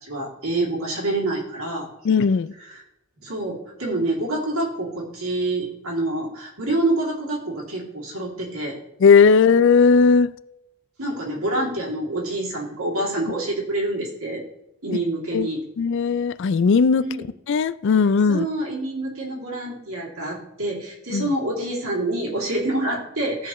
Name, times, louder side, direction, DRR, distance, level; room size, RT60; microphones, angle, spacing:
voice 1, 0.0-1.9 2.7-2.8 3.2-8.8 11.0-14.4 14.8-15.6 17.0-17.3 18.3-23.5, right 2 dB, 85° right, 2.7 m, -27 dB
voice 2, 2.0-2.5 9.0-10.3 15.3-15.5 15.8-17.0 17.5-18.5 21.1-21.3, left 5 dB, 55° left, 0.3 m, -17 dB
16.0 x 5.4 x 3.1 m
head